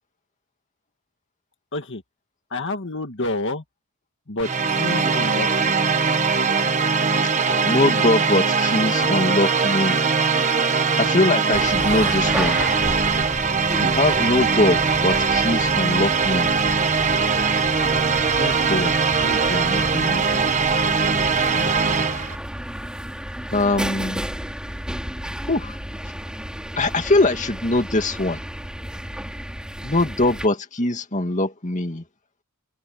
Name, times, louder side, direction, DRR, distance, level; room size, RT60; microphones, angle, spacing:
voice 1, 1.7-2.0 2.5-3.6 4.3-5.7, left 2 dB, 55° left, 1.9 m, -28 dB
sound 1, 4.4-22.4, right 5 dB, 35° right, 1.5 m, -21 dB
sound 2, 7.5-7.7 8.2-8.3 9.0-9.3 10.2-10.3 11.0-11.3 12.1-12.2 12.6-13.0, left 3 dB, 85° left, 6.4 m, -38 dB
voice 2, 7.7-10.0 11.0-12.6 13.8-16.5 18.4-18.9 19.2-20.4 21.3-21.7 23.5-24.3 25.5-25.8 26.8-28.4 29.8-32.0, left 2 dB, 35° left, 2.3 m, -22 dB
sound 3, 11.5-30.5, equal, 5° right, 4.8 m, -33 dB
head